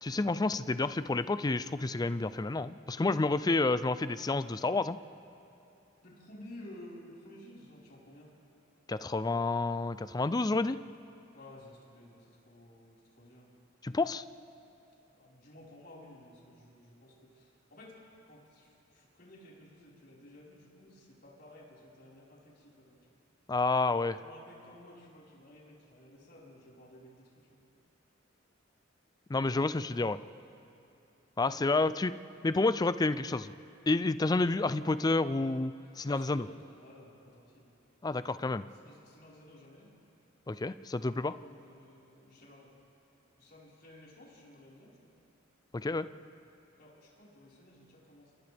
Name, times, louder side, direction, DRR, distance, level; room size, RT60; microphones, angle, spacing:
voice 1, 0.0-5.0 8.9-10.8 13.8-14.2 23.5-24.2 29.3-30.2 31.4-32.1 32.4-33.5 33.9-36.5 38.0-38.6 40.5-41.4 45.7-46.1, left 3 dB, 20° left, 13 dB, 0.4 m, -29 dB
voice 2, 6.0-8.3 11.3-13.5 15.1-17.9 18.2-23.0 24.2-27.6 31.5-32.0 36.1-37.7 38.8-39.9 41.4-42.7 43.4-45.1 46.8-48.3, left 1 dB, 50° left, -5 dB, 4.8 m, -54 dB
29.0 x 28.5 x 3.5 m, 2.8 s
head